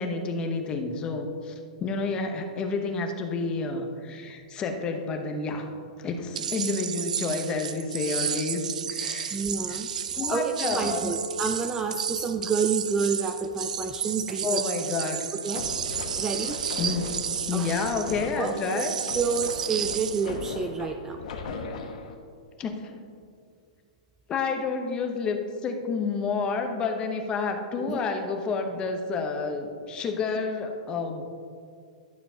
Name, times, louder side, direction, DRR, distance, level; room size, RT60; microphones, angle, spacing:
voice 1, 0.0-1.5 1.8-5.7 6.0-8.6 8.9-9.4 10.1-11.2 14.4-15.2 16.8-17.1 17.5-18.9 21.5-21.6 22.6-22.9 24.3-31.4, left 4 dB, 20° left, 4 dB, 0.9 m, -29 dB
sound 1, 6.4-20.3, right 8 dB, 80° right, 0.5 m, -32 dB
voice 2, 9.3-9.9 10.3-14.6 15.4-15.7 16.2-16.6 17.5-17.7 18.3-18.8 19.1-21.2 27.8-28.0, right 5 dB, 15° right, 6 dB, 0.3 m, -29 dB
Chink clink, 10.6-15.8, right 2 dB, 90° left, 0.7 m, -42 dB
sound 2, 15.5-22.2, left 4 dB, 70° left, 1.1 m, -38 dB
11.5 x 6.8 x 2.8 m, 2.2 s
hypercardioid pair, 140°, 4 cm